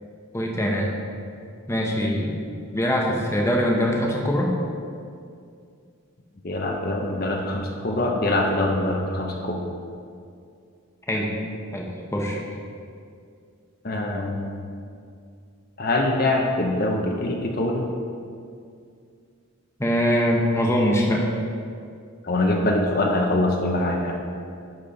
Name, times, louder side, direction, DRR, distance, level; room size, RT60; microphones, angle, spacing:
voice 1, 0.3-1.0 1.7-2.4 2.7-4.5 11.1-11.3 11.7-12.4 19.8-21.3, equal, 15° left, -1 dB, 0.8 m, -23 dB
voice 2, 6.4-9.6 13.8-14.7 15.8-17.9 22.2-24.2, left 1 dB, 45° left, 1 dB, 0.7 m, -24 dB
10.5 x 4.3 x 5.0 m, 2.3 s
head